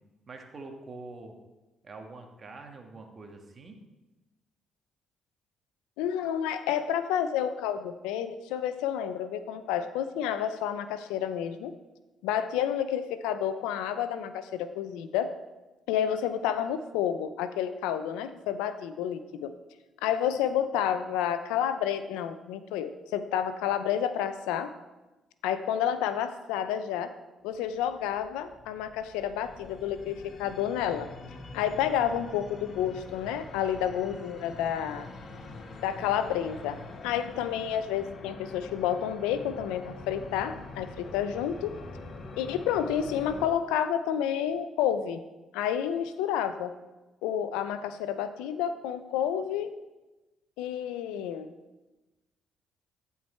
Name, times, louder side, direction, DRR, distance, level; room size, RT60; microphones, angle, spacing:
voice 1, 0.3-1.3 1.8-3.8, right 3 dB, 40° right, 3 dB, 1.6 m, -45 dB
voice 2, 6.0-11.7 12.2-15.3 15.9-19.5 20.0-24.7 25.4-27.1 27.4-31.1 31.5-35.1 35.8-36.8 37.0-41.7 42.4-45.2 45.5-46.7 47.2-49.7 50.6-51.5, left 9 dB, 90° left, 11 dB, 0.5 m, -30 dB
sound 1, 27.5-43.5, left 3 dB, 55° left, 1.1 m, -45 dB
14.0 x 4.7 x 4.4 m, 1.1 s
supercardioid pair, 65°, 0 cm